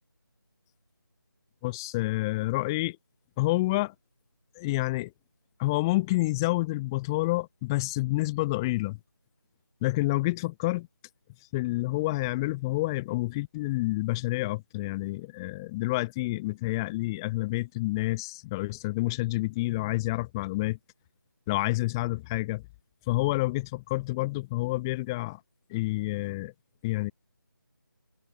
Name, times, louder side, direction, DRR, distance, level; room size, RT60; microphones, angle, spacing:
voice 1, 1.6-3.0 3.4-3.9 4.5-5.1 5.6-9.0 9.8-10.9 11.5-20.8 21.5-22.6 23.1-25.4 25.7-26.5 26.8-27.1, left 20 dB, 10° left, 1.8 m, -28 dB
figure-of-eight pair, 160°, 11 cm